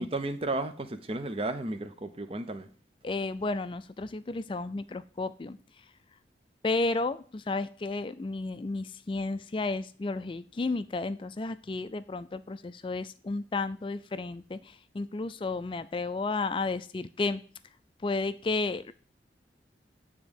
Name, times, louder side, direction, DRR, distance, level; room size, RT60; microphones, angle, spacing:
voice 1, 0.0-2.7, right 2 dB, 30° right, 0.6 m, -33 dB
voice 2, 3.0-5.6 6.6-17.4 18.0-18.9, left 3 dB, 30° left, 0.3 m, -32 dB
9.1 x 3.6 x 5.1 m
head